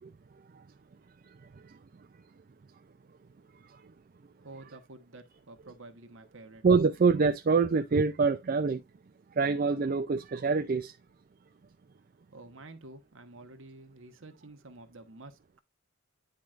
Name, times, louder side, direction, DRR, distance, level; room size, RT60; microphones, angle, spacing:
voice 1, 4.4-6.6 12.3-15.6, right 2 dB, 60° right, 1.2 m, -50 dB
voice 2, 6.6-8.8 9.4-10.9, right 4 dB, 40° right, 0.4 m, -25 dB
10.5 x 4.5 x 2.5 m
head